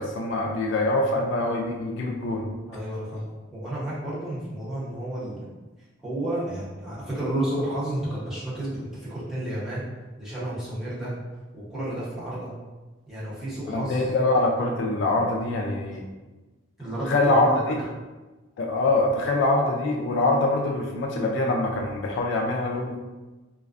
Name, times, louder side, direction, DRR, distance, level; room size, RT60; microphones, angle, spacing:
voice 1, 0.0-2.5 13.7-16.1 17.1-17.8 18.6-23.0, left 2 dB, 65° left, 1 dB, 0.3 m, -24 dB
voice 2, 2.7-5.5 6.0-9.8 10.2-11.1 11.5-12.5 13.1-14.0 16.8-17.6, right 1 dB, 5° right, -11 dB, 0.8 m, -31 dB
2.3 x 2.2 x 2.4 m, 1.2 s
head